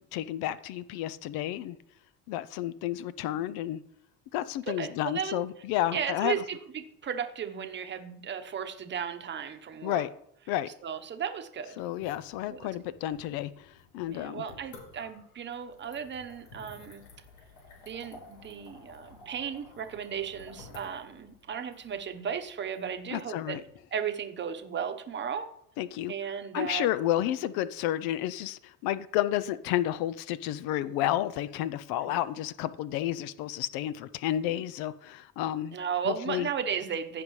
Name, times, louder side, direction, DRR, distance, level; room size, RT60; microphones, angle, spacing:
voice 1, 0.0-1.8 2.3-3.8 4.3-6.4 9.8-10.1 10.5-10.7 11.8-14.4 23.1-23.6 25.8-26.1 26.5-35.8 36.0-36.5, left 13 dB, 60° left, 15 dB, 0.6 m, -31 dB
voice 2, 4.8-5.4 5.9-10.0 10.8-11.8 12.5-12.6 14.1-17.0 17.9-23.6 23.9-25.5 26.1-26.9 32.0-32.2 35.7-37.2, right 7 dB, 25° right, 8 dB, 0.9 m, -35 dB
sound 1, 11.8-23.7, left 3 dB, 80° left, 3.7 m, -53 dB
15.0 x 5.3 x 3.2 m, 0.71 s
supercardioid pair, 105°, 41 cm